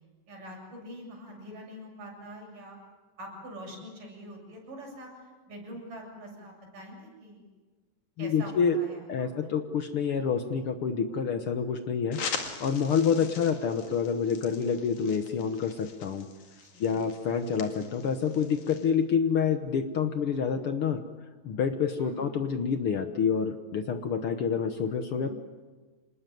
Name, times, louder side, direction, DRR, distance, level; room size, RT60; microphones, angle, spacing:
voice 1, 0.3-2.8 3.2-7.5 8.2-9.5 16.7-17.0 22.0-22.2 25.1-25.3, equal, 65° right, -1 dB, 8.8 m, -45 dB
voice 2, 8.2-8.8 9.1-12.2 12.6-16.3 16.8-21.0 21.4-25.3, left 6 dB, 75° left, 7 dB, 1.2 m, -28 dB
sound 1, 12.1-18.9, left 6 dB, 60° left, 3.5 m, -42 dB
27.5 x 20.0 x 9.3 m, 1.3 s
omnidirectional pair, 4.1 m